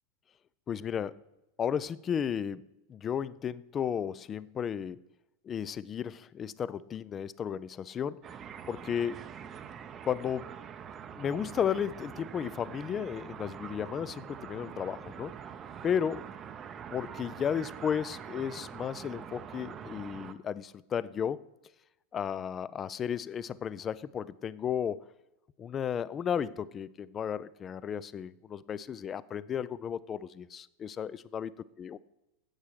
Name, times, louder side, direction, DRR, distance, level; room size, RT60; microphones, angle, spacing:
voice 1, 0.7-1.2 1.6-2.6 2.9-5.0 5.4-8.2 8.7-9.2 10.1-10.5 11.2-15.3 15.8-16.2 16.9-21.4 22.1-25.0 25.6-31.5 31.8-32.0, left 8 dB, 25° left, 19 dB, 0.4 m, -34 dB
sound 1, 8.2-20.3, right 8 dB, 25° right, 0.6 m, -44 dB
8.9 x 8.2 x 6.2 m, 0.96 s
figure-of-eight pair, 90°, 0 cm